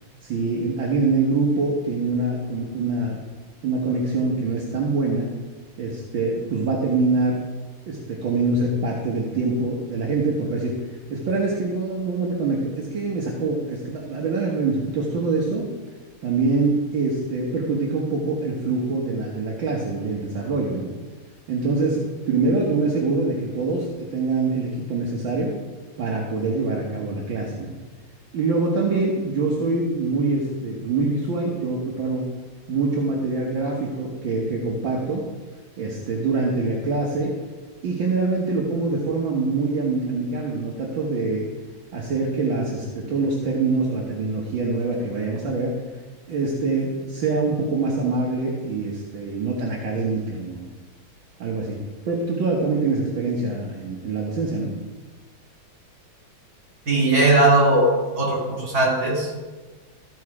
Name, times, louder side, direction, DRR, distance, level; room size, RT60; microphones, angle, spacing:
voice 1, 0.2-3.2 3.6-5.3 5.8-7.4 7.9-15.7 16.2-20.9 21.5-25.5 26.0-27.8 28.3-32.3 32.7-35.3 35.8-37.3 37.8-41.5 41.9-45.7 46.3-50.7 51.4-51.8 52.1-54.8, right 3 dB, 70° right, -2 dB, 1.9 m, -24 dB
voice 2, 56.9-57.9 58.2-59.4, right 2 dB, 45° right, -3 dB, 3.3 m, -18 dB
13.5 x 5.5 x 4.8 m, 1.3 s
omnidirectional pair, 2.2 m